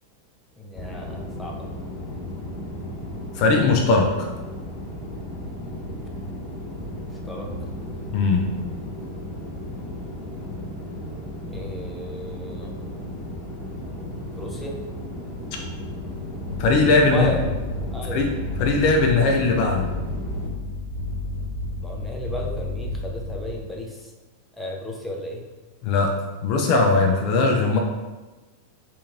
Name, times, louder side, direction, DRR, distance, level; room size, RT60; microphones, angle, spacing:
voice 1, 0.6-1.8 7.2-7.5 11.5-12.8 14.3-14.7 17.0-17.5 17.9-18.2 21.8-24.1 24.6-25.4, left 1 dB, 5° left, -2 dB, 0.6 m, -33 dB
sound 1, 0.7-20.5, left 1 dB, 25° left, 1.2 m, -35 dB
voice 2, 3.4-4.1 8.1-8.4 16.6-17.3 18.1-18.3 18.6-19.9 25.8-26.1 26.4-27.8, left 3 dB, 45° left, 1 dB, 0.5 m, -19 dB
sound 2, 16.5-23.5, left 2 dB, 75° right, 0.9 m, -31 dB
3.4 x 2.9 x 3.6 m, 1.2 s
figure-of-eight pair, 90°, 0 cm